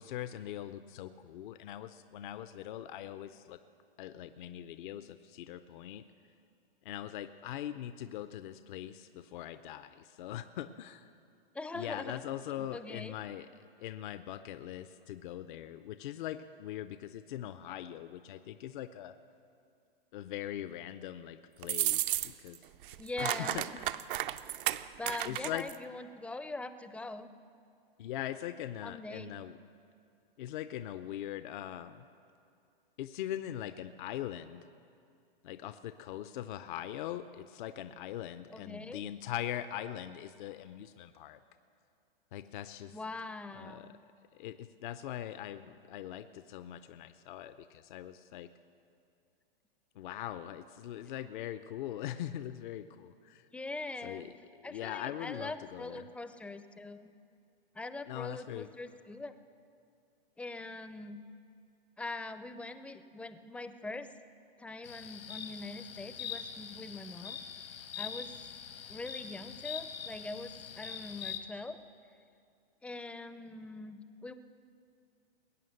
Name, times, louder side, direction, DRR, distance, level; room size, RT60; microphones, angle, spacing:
voice 1, 0.0-3.6 4.0-6.0 6.8-11.1 11.7-19.2 20.1-22.6 23.2-24.1 25.2-25.7 28.0-29.6 30.4-32.1 33.0-34.6 35.4-41.4 42.3-43.0 43.5-43.9 44.3-48.5 50.0-53.5 54.0-54.4 54.6-56.1 58.1-58.7, left 12 dB, 55° left, 11 dB, 0.6 m, -41 dB
voice 2, 11.5-12.3 12.6-13.2 23.0-23.6 25.0-27.3 28.8-29.4 38.5-39.0 42.9-44.0 53.5-54.3 54.6-57.1 57.7-59.3 60.4-61.2 62.0-64.1 64.6-67.4 68.0-68.3 68.9-71.8 72.8-74.3, left 2 dB, 5° left, 11 dB, 0.5 m, -42 dB
sound 1, 21.6-22.6 22.8-25.8, right 13 dB, 60° right, 0.6 m, -33 dB
sound 2, 64.8-71.4, left 8 dB, 80° left, 1.7 m, -43 dB
21.0 x 9.0 x 6.5 m, 2.5 s
hypercardioid pair, 115°, 29 cm